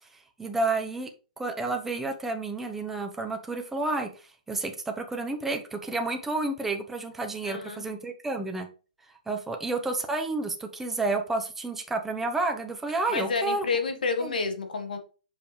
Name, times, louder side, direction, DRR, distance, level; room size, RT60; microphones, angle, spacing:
voice 1, 0.4-1.1 1.4-8.7 9.3-13.7 14.2-14.3, right 3 dB, 5° right, 4 dB, 0.9 m, -30 dB
voice 2, 7.4-7.8 13.1-15.0, left 4 dB, 75° left, 6 dB, 1.5 m, -29 dB
6.8 x 5.3 x 3.3 m, 0.37 s
hypercardioid pair, 140°, 5 cm